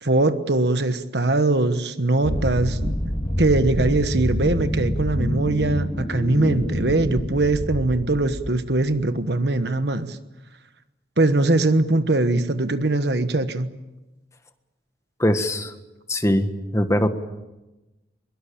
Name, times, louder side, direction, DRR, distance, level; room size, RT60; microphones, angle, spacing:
voice 1, 0.0-10.2 11.2-13.7, right 2 dB, 65° right, 10 dB, 1.3 m, -21 dB
sound 1, 2.2-9.0, equal, 30° left, 2.3 m, -27 dB
voice 2, 15.2-15.7 16.1-17.1, equal, 15° left, 8 dB, 1.6 m, -21 dB
23.0 x 22.5 x 8.7 m, 1.0 s
head